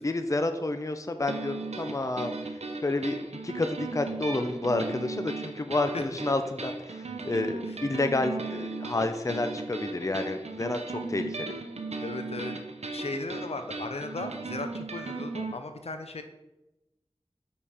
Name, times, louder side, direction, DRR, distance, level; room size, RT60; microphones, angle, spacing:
voice 1, 0.0-3.2 3.4-11.5, left 2 dB, 30° left, 7 dB, 0.5 m, -30 dB
sound 1, 1.3-15.5, right 3 dB, 85° right, 0.6 m, -37 dB
voice 2, 12.0-12.5 12.9-16.2, left 3 dB, 75° left, 7 dB, 0.6 m, -36 dB
5.4 x 4.4 x 4.9 m, 0.97 s
wide cardioid pair, 55°, 11 cm